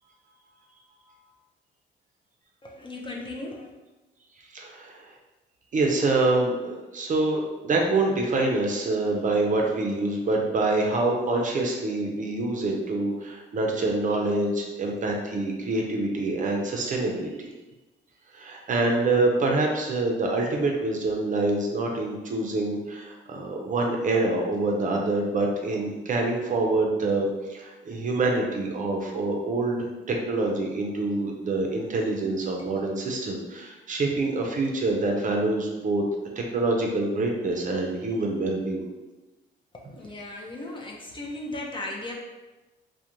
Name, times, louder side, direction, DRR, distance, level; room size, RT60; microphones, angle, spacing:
voice 1, 2.6-3.7 39.9-42.1, left 2 dB, 25° left, -1 dB, 0.4 m, -36 dB
voice 2, 4.5-5.1 5.7-17.5 18.3-36.0 36.4-38.8, right 2 dB, 40° right, 1 dB, 0.5 m, -26 dB
2.4 x 2.1 x 2.9 m, 1.1 s
cardioid pair, 90°, 20 cm